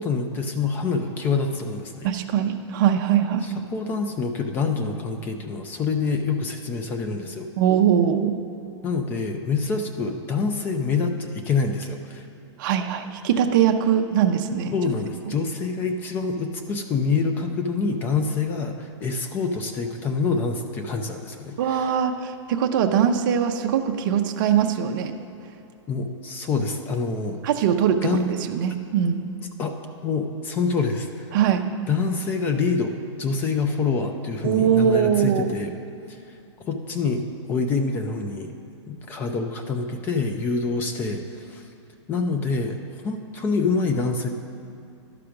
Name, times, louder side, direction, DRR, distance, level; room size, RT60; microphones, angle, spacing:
voice 1, 0.0-2.1 3.4-7.5 8.8-12.3 14.7-22.0 25.9-27.4 28.0-28.3 29.6-29.8 30.0-31.3 31.9-35.7 36.1-36.2 36.7-38.5 38.9-41.7 42.1-42.8 43.0-44.3, left 4 dB, 10° left, 5 dB, 0.3 m, -26 dB
voice 2, 2.0-3.5 7.6-8.4 12.6-14.7 21.6-25.1 27.4-29.2 31.3-31.6 34.4-35.5, right 8 dB, 40° right, 5 dB, 0.6 m, -21 dB
12.0 x 5.0 x 5.8 m, 2.6 s
hypercardioid pair, 160°, 16 cm